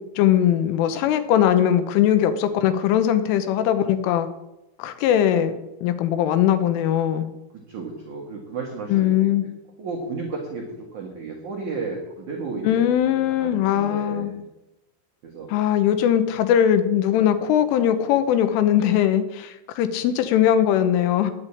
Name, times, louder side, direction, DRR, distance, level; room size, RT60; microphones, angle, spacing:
voice 1, 0.2-4.3 4.8-5.6 5.8-7.3 8.9-9.4 12.6-14.3 15.5-21.3, left 10 dB, 80° left, 10 dB, 3.3 m, -20 dB
voice 2, 7.7-9.3 9.8-10.6 10.9-14.5 15.2-15.5, right 4 dB, 60° right, 0 dB, 2.0 m, -33 dB
10.5 x 8.4 x 8.5 m, 0.93 s
omnidirectional pair, 5.9 m